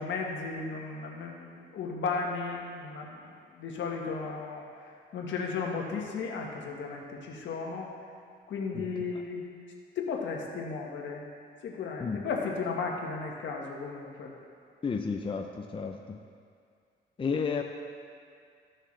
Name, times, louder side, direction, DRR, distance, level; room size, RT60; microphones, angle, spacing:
voice 1, 0.0-4.6 5.1-7.9 8.5-9.4 9.9-11.2 11.6-14.3, left 4 dB, 70° left, 0 dB, 1.5 m, -35 dB
voice 2, 14.8-16.2 17.2-17.6, left 5 dB, 25° left, 3 dB, 0.6 m, -32 dB
14.5 x 6.4 x 3.3 m, 2.2 s
cardioid pair, 90°, 20 cm